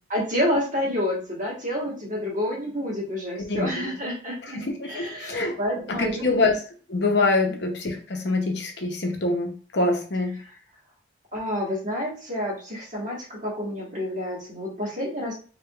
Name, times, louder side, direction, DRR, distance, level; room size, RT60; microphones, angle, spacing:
voice 1, 0.1-4.6 4.8-6.5 11.3-15.3, left 1 dB, 40° right, -3 dB, 1.5 m, -29 dB
voice 2, 3.4-3.9 4.4-5.6 5.9-6.6 6.9-10.4, left 2 dB, 60° left, 3 dB, 0.7 m, -25 dB
3.5 x 3.3 x 2.3 m, 0.40 s
head